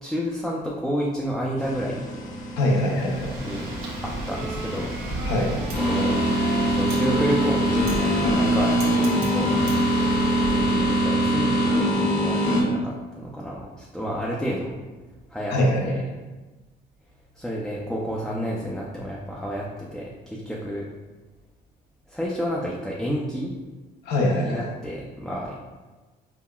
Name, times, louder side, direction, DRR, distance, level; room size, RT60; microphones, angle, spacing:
voice 1, 0.0-2.0 3.4-3.7 4.0-4.9 5.7-6.2 6.6-9.5 10.5-14.8 15.3-15.5 15.8-16.0 17.3-20.9 22.1-23.5 24.4-25.5, equal, ahead, -4 dB, 0.4 m, -30 dB
sound 1, 1.6-12.6, equal, 45° left, 0.8 m, -24 dB
voice 2, 2.6-3.3 5.3-5.6 15.5-16.0 24.0-24.6, left 1 dB, 80° left, 0 dB, 0.6 m, -23 dB
Wind, 2.8-11.0, right 1 dB, 85° right, 1.0 m, -34 dB
Wind instrument woodwind instrument, 4.3-11.1, right 1 dB, 35° right, 0.9 m, -36 dB
5.4 x 2.1 x 2.3 m, 1.3 s
cardioid pair, 110°, 17 cm